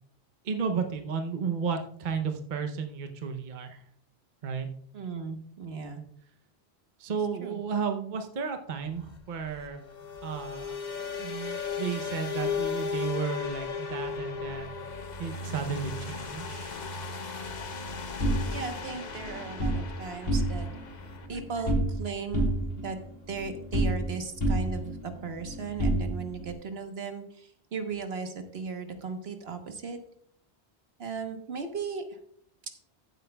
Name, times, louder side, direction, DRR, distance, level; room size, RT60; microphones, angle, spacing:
voice 1, 0.4-3.8 4.4-4.7 7.0-9.8 10.2-10.7 11.2-14.7 15.2-16.8, right 6 dB, 50° right, 6 dB, 0.9 m, -33 dB
voice 2, 4.9-6.0 7.4-7.6 18.5-20.7 21.3-23.0 23.3-30.0 31.0-32.2, right 5 dB, 70° right, 6 dB, 1.3 m, -37 dB
sound 1, 8.8-21.3, left 5 dB, 45° left, 0.9 m, -36 dB
sound 2, 18.2-19.8 20.2-20.8 21.1-22.0 22.3-24.1 24.4-26.5, right 1 dB, 60° left, 2.7 m, -29 dB
14.5 x 8.2 x 2.3 m, 0.65 s
omnidirectional pair, 1.1 m